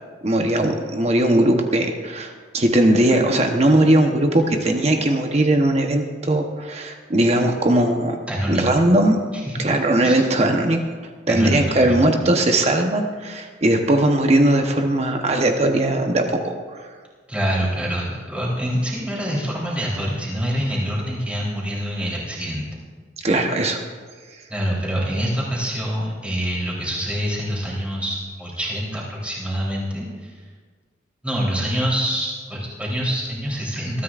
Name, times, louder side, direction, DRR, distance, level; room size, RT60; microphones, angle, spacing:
voice 1, 0.2-8.2 8.5-9.2 9.6-10.8 11.3-16.9 23.2-23.8, right 1 dB, 35° right, 3 dB, 1.0 m, -19 dB
voice 2, 8.3-8.6 9.4-9.7 10.0-10.5 11.3-12.0 17.3-22.7 24.5-30.4 31.2-34.0, equal, 5° right, -5 dB, 3.5 m, -25 dB
21.5 x 13.5 x 2.5 m, 1.5 s
head